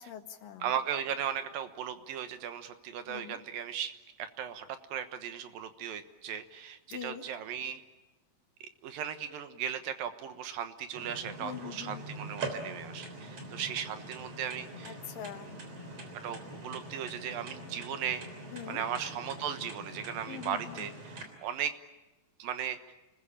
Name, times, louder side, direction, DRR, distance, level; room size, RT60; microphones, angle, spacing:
voice 1, 0.0-0.7 3.1-3.4 6.9-7.3 11.4-12.0 14.8-15.6 18.5-18.8 20.3-20.9, left 9 dB, 70° left, 7 dB, 3.1 m, -43 dB
voice 2, 0.6-7.8 8.8-15.0 16.2-18.3 18.7-21.1 21.4-21.7 22.4-22.8, right 9 dB, 75° right, 9 dB, 3.0 m, -37 dB
sound 1, 11.0-21.2, right 2 dB, 45° right, 4.7 m, -43 dB
29.0 x 20.5 x 8.8 m, 1.0 s
omnidirectional pair, 4.1 m